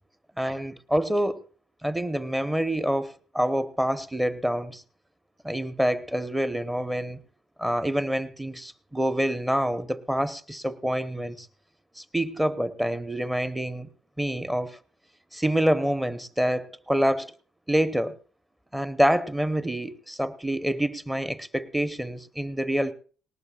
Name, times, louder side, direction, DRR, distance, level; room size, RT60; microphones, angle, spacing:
voice 1, 0.4-1.5 1.8-4.8 5.4-7.2 7.6-11.5 12.0-13.9 14.2-14.8 15.3-17.3 17.7-18.1 18.7-22.9, equal, 10° right, 1.0 m, -27 dB
19.0 x 18.5 x 2.4 m
hypercardioid pair, 50°, 0 cm